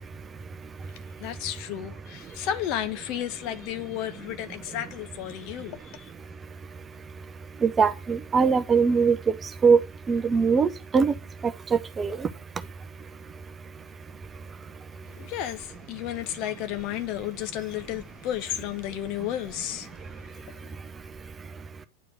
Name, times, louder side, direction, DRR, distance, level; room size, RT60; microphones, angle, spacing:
voice 1, 1.2-6.1 15.0-20.7, left 11 dB, 40° left, 1.1 m, -33 dB
voice 2, 7.6-9.2 9.6-9.8 10.1-11.1 11.7-12.2, right 5 dB, 20° right, 0.7 m, -21 dB
10.0 x 4.8 x 6.5 m
figure-of-eight pair, 90°, 0 cm